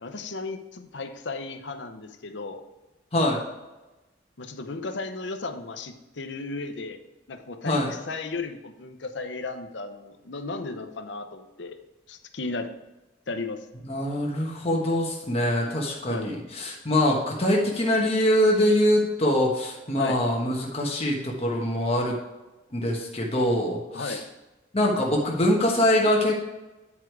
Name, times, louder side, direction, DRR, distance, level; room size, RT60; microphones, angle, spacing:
voice 1, 0.0-2.6 4.4-7.0 7.3-11.8 12.1-12.7 13.3-13.6 16.1-16.3 19.9-20.2 23.9-24.2, left 3 dB, 65° left, 7 dB, 0.8 m, -35 dB
voice 2, 13.8-22.2 22.7-24.2 24.7-26.4, left 1 dB, 30° left, -1 dB, 1.3 m, -24 dB
9.9 x 4.8 x 4.6 m, 1.1 s
head